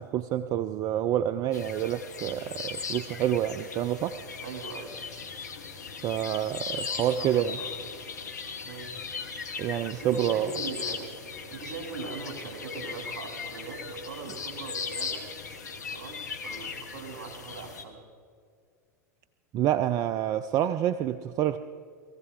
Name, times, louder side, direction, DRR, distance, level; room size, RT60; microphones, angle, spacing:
voice 1, 0.0-4.3 6.0-7.6 9.6-10.6 19.5-21.6, right 11 dB, 40° right, 0.5 m, -28 dB
sound 1, 1.5-17.8, left 5 dB, 80° left, 1.3 m, -38 dB
voice 2, 4.4-4.9 7.1-7.9 8.6-8.9 9.6-11.1 11.5-15.2 15.9-16.2 16.4-18.0, right 4 dB, 65° right, 2.7 m, -41 dB
21.5 x 15.0 x 3.7 m
hypercardioid pair, 85°, 9 cm